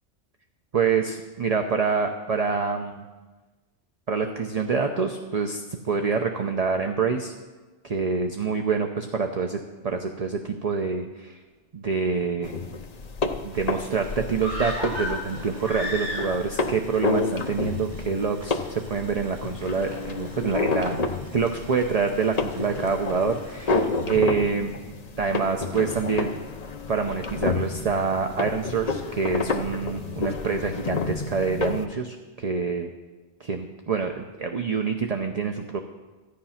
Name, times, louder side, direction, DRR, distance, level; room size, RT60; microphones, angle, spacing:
voice 1, 0.7-3.0 4.1-7.3 7.8-11.4 11.7-12.6 13.4-21.0 21.3-24.8 25.2-26.3 26.9-32.9 33.4-35.8, right 5 dB, 40° right, 4 dB, 0.8 m, -26 dB
sound 1, 12.4-31.8, left 3 dB, 40° left, 0.8 m, -30 dB
Boiling, 13.5-24.1, right 2 dB, 75° right, 3.6 m, -50 dB
sound 2, 14.4-16.6 16.9-17.0, left 1 dB, 20° right, 4.2 m, -32 dB
13.5 x 10.0 x 5.8 m, 1.2 s
omnidirectional pair, 1.2 m